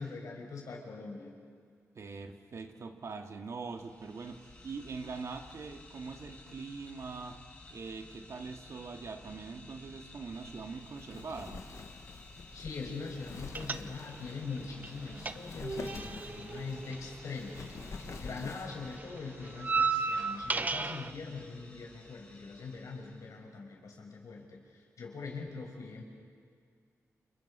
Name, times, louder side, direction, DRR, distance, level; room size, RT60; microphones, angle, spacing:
voice 1, 0.0-1.4 12.5-17.7 18.1-26.0, left 4 dB, 85° left, 0 dB, 6.0 m, -42 dB
voice 2, 1.9-7.4 7.7-11.7 18.1-18.5, right 4 dB, 65° right, 4 dB, 2.1 m, -43 dB
sound 1, 3.6-23.3, left 2 dB, 25° left, 6.2 m, -54 dB
Wind, 10.3-19.0, left 4 dB, 60° left, 1.6 m, -47 dB
sound 2, 13.5-14.3 14.6-18.0 18.2-21.1, right 4 dB, 30° right, 0.8 m, -34 dB
30.0 x 29.5 x 5.7 m, 2.1 s
wide cardioid pair, 135°, 6 cm